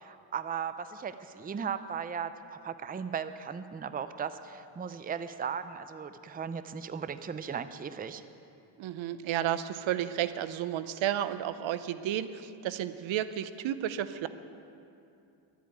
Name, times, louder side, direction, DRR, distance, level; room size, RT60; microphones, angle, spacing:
voice 1, 0.0-8.2, right 7 dB, 20° right, 11 dB, 0.5 m, -37 dB
voice 2, 8.8-14.3, right 11 dB, 75° right, 13 dB, 0.7 m, -32 dB
12.5 x 8.4 x 9.1 m, 2.7 s
cardioid pair, 100°, 46 cm